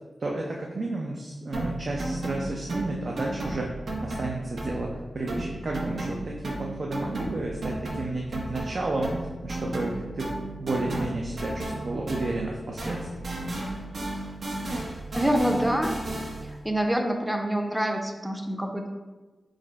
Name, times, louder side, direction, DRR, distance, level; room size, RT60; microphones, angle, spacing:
voice 1, 0.2-3.7 4.0-10.3 10.6-13.3, right 2 dB, 55° right, -1 dB, 0.5 m, -32 dB
sound 1, 1.5-5.0 5.3-12.5 12.8-16.6, right 1 dB, 70° right, 0.9 m, -34 dB
voice 2, 15.1-16.0 16.4-18.9, equal, 5° right, 3 dB, 0.5 m, -26 dB
4.9 x 2.1 x 4.5 m, 1.2 s
wide cardioid pair, 80°, 0 cm